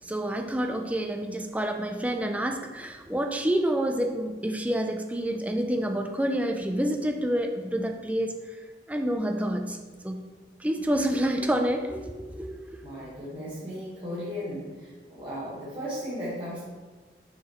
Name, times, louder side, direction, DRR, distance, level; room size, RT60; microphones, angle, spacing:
voice 1, 0.1-8.4 8.9-9.8 10.0-10.2 10.6-12.8, right 1 dB, 10° right, 4 dB, 0.5 m, -28 dB
voice 2, 12.8-16.6, equal, 25° right, -10 dB, 1.4 m, -36 dB
6.2 x 5.7 x 3.0 m, 1.4 s
head